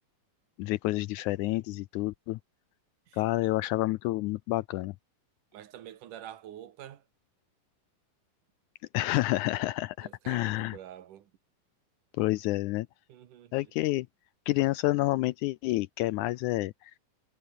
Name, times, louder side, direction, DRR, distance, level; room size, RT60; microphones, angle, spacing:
voice 1, 0.6-2.4 3.1-4.9 8.9-10.8 12.2-12.9 13.5-14.1 14.5-16.9, left 18 dB, 80° left, 1.8 m, -29 dB
voice 2, 3.1-3.5 5.5-7.0 10.0-11.3 13.1-13.7, right 11 dB, 75° right, 3.0 m, -47 dB
omnidirectional pair, 3.8 m